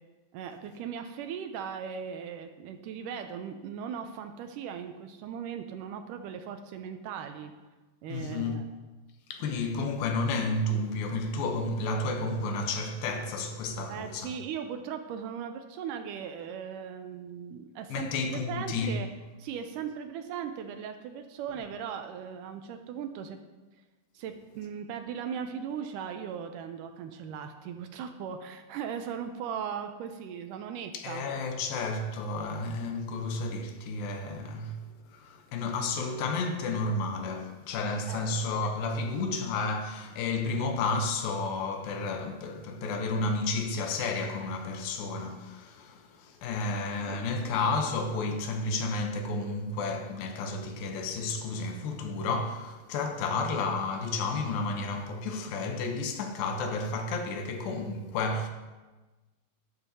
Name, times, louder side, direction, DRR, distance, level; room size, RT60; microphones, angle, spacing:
voice 1, 0.3-7.5 8.0-8.6 13.9-19.1 19.4-23.4 24.2-31.2 38.1-38.3 46.7-47.2, right 7 dB, 85° right, 1.9 m, -38 dB
voice 2, 8.1-8.6 9.3-14.3 17.9-19.0 30.9-34.8 35.1-58.5, left 3 dB, 80° left, 2.6 m, -31 dB
12.0 x 10.5 x 2.8 m
omnidirectional pair, 4.2 m